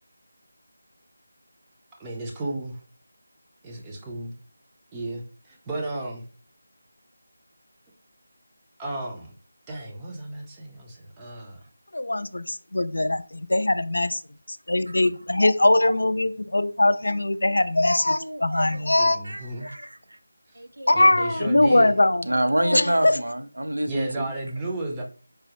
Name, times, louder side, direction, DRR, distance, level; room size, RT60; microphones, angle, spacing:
voice 1, 2.0-2.8 3.6-4.3 4.9-6.2 8.8-9.3 9.7-11.6 19.0-19.7 20.5-20.6 20.9-22.0 23.9-25.0, right 2 dB, 10° right, 0.6 m, -33 dB
voice 2, 11.9-14.2 14.5-19.2 20.9-22.2 22.6-23.2, left 2 dB, 80° left, 0.4 m, -21 dB
voice 3, 18.1-18.8 19.2-20.0 20.6-21.0 22.2-24.3, right 1 dB, 85° right, 0.5 m, -28 dB
4.6 x 2.0 x 3.0 m
figure-of-eight pair, 170°, 0 cm